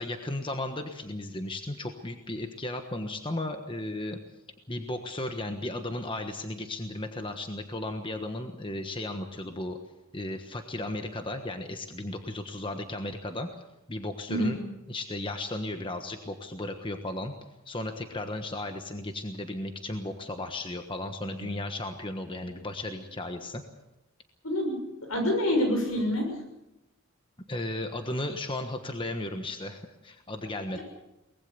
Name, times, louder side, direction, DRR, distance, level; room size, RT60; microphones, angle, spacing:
voice 1, 0.0-4.2 4.7-9.8 10.1-13.5 13.9-14.6 14.9-17.3 17.6-23.6 27.5-30.8, left 1 dB, 25° left, 6 dB, 1.3 m, -35 dB
voice 2, 24.4-24.8 25.1-26.3 30.7-30.8, left 1 dB, 80° left, 4 dB, 6.6 m, -26 dB
23.5 x 19.5 x 6.9 m, 0.93 s
head